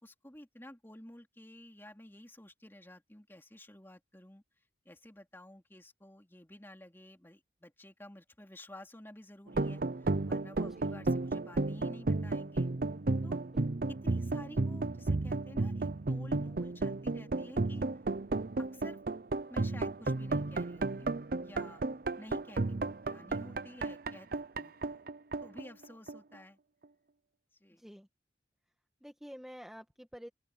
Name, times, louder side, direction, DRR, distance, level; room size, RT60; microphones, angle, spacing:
voice 1, 0.0-4.4 4.8-12.7 13.2-13.4 13.9-17.9 18.6-19.0 19.5-21.1 21.4-21.8 22.2-25.0 25.4-26.6 27.6-27.8, left 1 dB, 15° left, 3.0 m, -52 dB
sound 1, 9.5-26.3, right 2 dB, 50° right, 0.7 m, -33 dB
voice 2, 27.8-28.1 29.0-30.3, equal, ahead, 1.6 m, -49 dB
open air
head